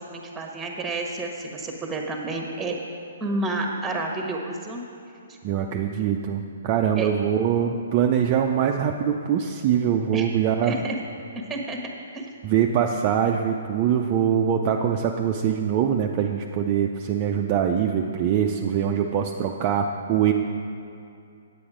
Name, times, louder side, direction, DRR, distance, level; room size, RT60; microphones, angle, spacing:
voice 1, 0.0-2.8 3.2-4.8 7.0-7.1 10.1-10.3 10.6-11.0 11.5-11.8 12.1-12.3, right 2 dB, 10° right, 1 dB, 1.2 m, -30 dB
voice 2, 5.4-10.7 12.4-20.3, right 8 dB, 35° right, 2 dB, 0.5 m, -23 dB
8.6 x 8.4 x 5.0 m, 2.6 s
hypercardioid pair, 135°, 0 cm